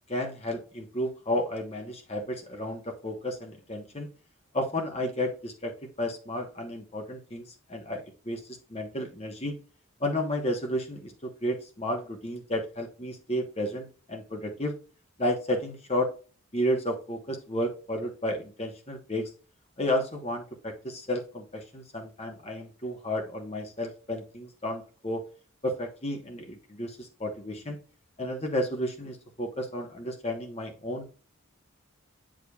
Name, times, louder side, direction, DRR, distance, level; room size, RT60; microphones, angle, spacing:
voice 1, 0.1-4.1 4.5-9.5 10.0-14.7 15.2-16.1 16.5-19.3 19.8-25.2 25.6-27.8 28.2-31.1, left 1 dB, 30° left, 3 dB, 1.2 m, -32 dB
8.8 x 5.0 x 2.4 m, 0.37 s
head